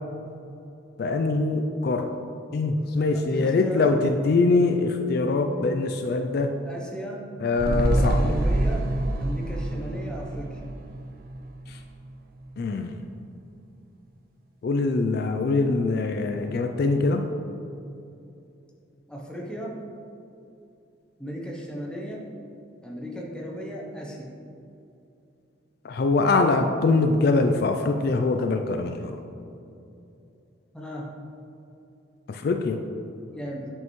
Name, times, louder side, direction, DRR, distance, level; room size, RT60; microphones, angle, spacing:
voice 1, 1.0-2.1 2.5-6.6 7.4-8.2 12.6-13.0 14.6-17.3 25.8-29.1 32.3-32.8, left 3 dB, 50° left, 5 dB, 0.3 m, -23 dB
voice 2, 3.0-4.0 6.6-7.4 7.6-8.9 9.2-10.6 19.1-19.8 21.2-22.3 22.8-24.3 30.7-31.2 33.3-33.7, equal, 5° left, -2 dB, 0.7 m, -36 dB
sound 1, 7.6-12.1 12.4-12.5, right 1 dB, 45° right, 0.4 m, -26 dB
7.9 x 5.4 x 3.1 m, 2.7 s
head